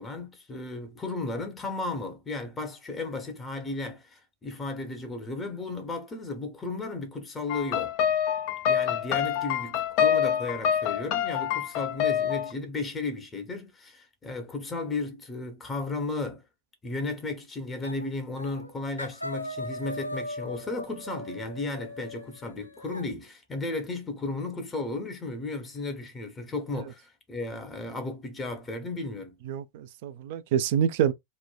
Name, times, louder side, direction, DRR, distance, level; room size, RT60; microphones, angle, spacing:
voice 1, 0.0-7.9 8.7-16.4 16.8-29.4, left 3 dB, 20° left, 0.7 m, -34 dB
sound 1, 7.5-12.5, left 9 dB, 45° left, 0.4 m, -26 dB
sound 2, 17.8-18.1 18.4-18.7 19.0-23.1, left 1 dB, 85° left, 1.0 m, -38 dB
voice 2, 29.5-31.1, right 9 dB, 50° right, 0.3 m, -27 dB
3.0 x 2.1 x 2.2 m
figure-of-eight pair, 90°, 0 cm